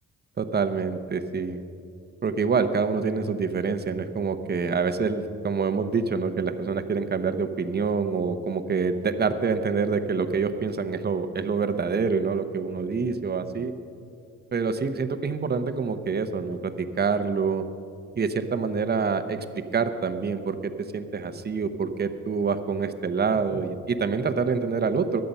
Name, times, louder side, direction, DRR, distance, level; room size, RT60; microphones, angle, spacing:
voice 1, 0.4-1.6 2.2-13.7 14.5-17.6 18.2-19.4 19.7-25.2, right 5 dB, 35° right, 9 dB, 1.0 m, -26 dB
22.5 x 7.6 x 5.6 m, 2.4 s
cardioid pair, 90°, 30 cm